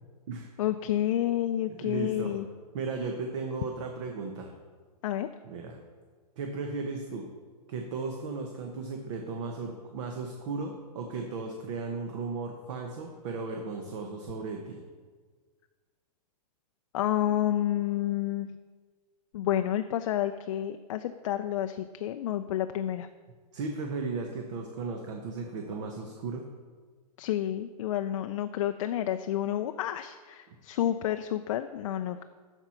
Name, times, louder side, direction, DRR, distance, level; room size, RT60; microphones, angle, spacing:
voice 1, 0.6-2.5 5.0-5.3 16.9-18.5 19.3-23.1 27.2-32.2, left 12 dB, 50° left, 8 dB, 0.4 m, -30 dB
voice 2, 1.7-2.3 2.7-4.5 5.4-5.8 6.4-7.3 7.7-14.8 23.5-26.5 30.5-30.6, right 4 dB, 45° right, 3 dB, 1.0 m, -35 dB
12.5 x 4.5 x 5.7 m, 1.5 s
hypercardioid pair, 150°, 20 cm